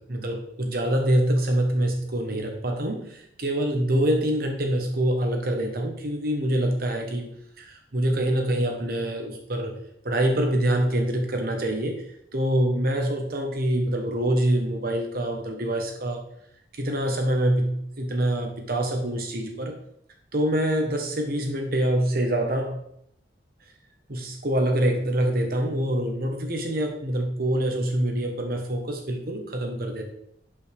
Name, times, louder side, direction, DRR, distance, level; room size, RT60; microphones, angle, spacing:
voice 1, 0.0-9.8 10.0-12.0 12.3-16.3 16.7-19.8 20.3-22.8 24.1-30.0, right 1 dB, 55° right, 3 dB, 1.2 m, -25 dB
11.0 x 5.5 x 3.5 m, 0.71 s
head